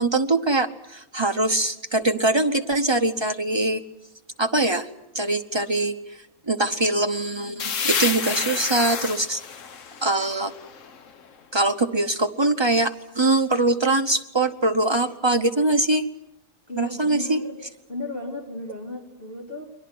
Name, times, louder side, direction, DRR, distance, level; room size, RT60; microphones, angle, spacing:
voice 1, 0.0-3.8 4.4-4.9 5.1-5.9 6.5-9.4 10.0-10.5 11.5-16.1 16.8-17.4, right 2 dB, 45° right, 5 dB, 0.3 m, -22 dB
sound 1, 7.6-11.2, left 6 dB, 45° left, 1.1 m, -29 dB
voice 2, 16.7-17.6 17.9-19.7, left 2 dB, 25° left, 1 dB, 4.2 m, -34 dB
30.0 x 22.5 x 6.2 m, 0.82 s
omnidirectional pair, 2.3 m